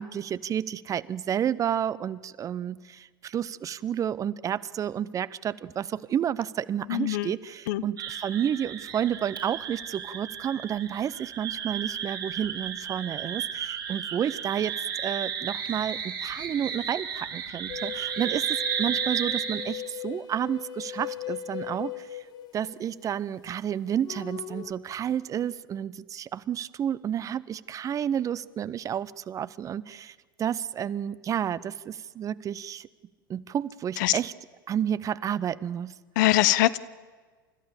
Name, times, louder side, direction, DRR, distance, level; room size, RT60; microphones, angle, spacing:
voice 1, 0.0-22.2 22.5-32.9 33.3-34.3 34.7-35.9, right 9 dB, 30° right, 18 dB, 0.6 m, -31 dB
voice 2, 6.9-7.3 7.7-7.8 34.0-34.1 36.2-36.8, left 16 dB, 55° left, 17 dB, 0.8 m, -22 dB
sound 1, 8.0-19.9, right 8 dB, 70° right, 2.9 m, -33 dB
sound 2, 17.7-23.2 24.0-24.7, left 12 dB, 35° left, 1.5 m, -39 dB
29.5 x 14.0 x 7.0 m, 1.4 s
figure-of-eight pair, 80°, 12 cm